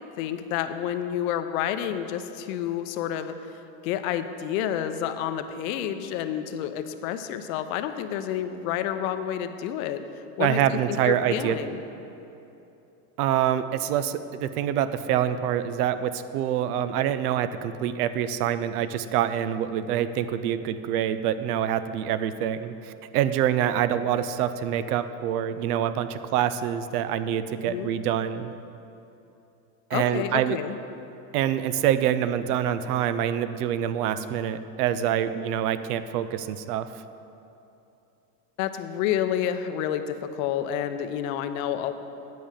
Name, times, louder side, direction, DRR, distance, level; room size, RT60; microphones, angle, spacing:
voice 1, 0.2-3.3 3.8-10.0 10.4-10.6 10.9-11.8 27.7-27.9 29.9-30.8 38.6-41.9, left 10 dB, 65° left, 9 dB, 0.7 m, -29 dB
voice 2, 10.4-11.6 13.2-28.5 29.9-30.6 31.3-36.9, right 10 dB, 85° right, 12 dB, 0.6 m, -26 dB
9.4 x 5.2 x 7.3 m, 2.8 s
supercardioid pair, 140°, 44 cm